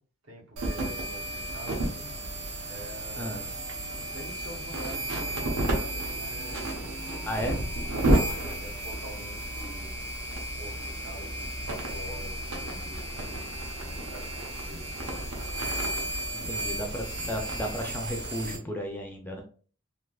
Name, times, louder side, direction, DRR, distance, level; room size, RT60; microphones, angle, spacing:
voice 1, 0.2-2.1 2.6-3.8 4.1-6.7 7.7-10.0 10.6-15.2, right 1 dB, 65° right, 0.9 m, -46 dB
sound 1, 0.6-18.6, right 1 dB, 85° right, 0.8 m, -32 dB
voice 2, 3.2-3.5 7.3-7.6 14.6-14.9 16.5-19.4, equal, 10° left, 0.3 m, -34 dB
3.3 x 2.8 x 2.3 m
head